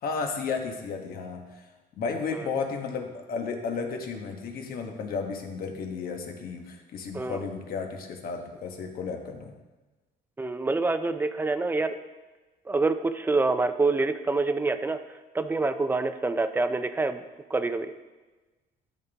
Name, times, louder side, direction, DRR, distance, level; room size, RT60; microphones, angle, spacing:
voice 1, 0.0-1.7 2.0-9.5, left 5 dB, 60° left, 3 dB, 1.2 m, -33 dB
voice 2, 10.4-12.0 12.7-15.0 15.3-17.2 17.5-17.9, right 3 dB, 10° right, 10 dB, 0.4 m, -26 dB
12.0 x 4.3 x 3.4 m, 1.2 s
cardioid pair, 110°, 17 cm